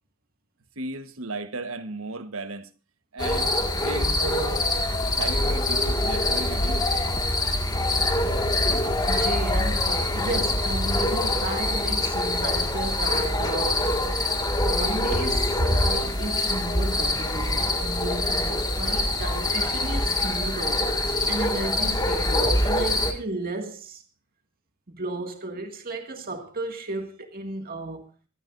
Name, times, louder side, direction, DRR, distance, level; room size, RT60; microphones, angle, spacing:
voice 1, 0.8-2.7 3.1-4.7 5.1-6.9, right 2 dB, 70° right, 1.4 m, -35 dB
sound 1, 3.2-23.1, left 1 dB, 20° left, 2.0 m, -24 dB
voice 2, 9.1-14.0 14.6-20.8 21.3-24.0 24.9-28.1, right 2 dB, 45° right, 2.1 m, -33 dB
23.5 x 14.0 x 2.6 m
head